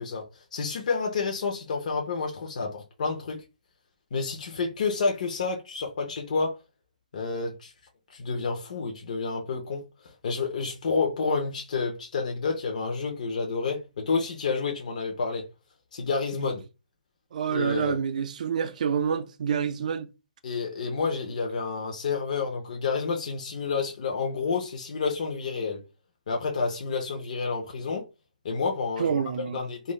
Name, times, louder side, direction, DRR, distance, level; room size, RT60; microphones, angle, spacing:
voice 1, 0.0-3.4 4.1-6.6 7.1-7.7 8.1-9.8 10.2-15.4 15.9-16.6 17.5-18.0 20.4-25.8 26.3-28.0 28.4-29.2 29.5-29.9, left 4 dB, 60° left, 0.8 m, -29 dB
voice 2, 17.3-20.1 29.0-29.6, right 7 dB, 60° right, 0.3 m, -27 dB
3.1 x 2.6 x 2.3 m
hypercardioid pair, 150°, 5 cm